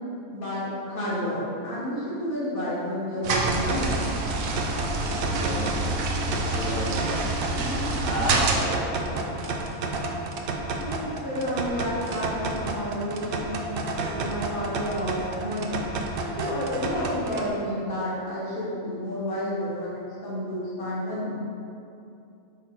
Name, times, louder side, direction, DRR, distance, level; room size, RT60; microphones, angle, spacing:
voice 1, 0.3-4.0 10.8-13.6 14.1-15.8 16.2-21.4, equal, 75° left, -8 dB, 2.1 m, -30 dB
sound 1, 3.2-8.6, right 2 dB, 75° right, 1.1 m, -27 dB
sound 2, 3.5-17.5, right 3 dB, 55° right, 0.6 m, -32 dB
voice 2, 5.2-5.6 6.3-6.9 7.5-7.8 8.1-9.2, left 1 dB, 45° left, -8 dB, 1.7 m, -32 dB
8.9 x 3.5 x 4.3 m, 2.6 s
omnidirectional pair, 1.5 m